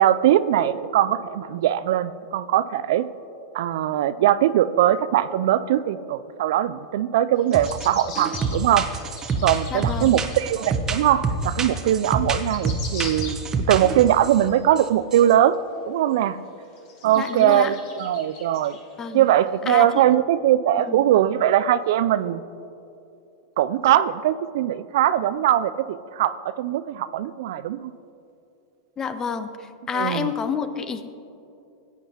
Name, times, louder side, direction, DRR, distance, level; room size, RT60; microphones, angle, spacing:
voice 1, 0.0-3.1 3.5-8.9 9.4-13.4 13.7-15.6 15.9-16.4 17.0-18.8 19.1-22.4 23.6-27.9 29.9-30.3, right 11 dB, 65° right, 14 dB, 0.3 m, -21 dB
sound 1, 7.4-10.5 11.0-11.1 11.8-11.9 12.1-13.7 14.0-14.9 15.5-15.6 16.1-16.2 16.7-19.2 19.7-19.8, left 4 dB, 50° left, 2.2 m, -41 dB
sound 2, 7.5-7.9 8.2-14.4 14.8-14.9 15.1-15.3, right 4 dB, 25° right, 0.9 m, -27 dB
voice 2, 9.7-10.1 17.2-17.7 19.0-19.3 19.7-20.0 20.8-21.0 29.0-31.1, left 6 dB, 25° left, 11 dB, 0.7 m, -29 dB
16.5 x 9.1 x 2.9 m, 2.7 s
hypercardioid pair, 100°, 2 cm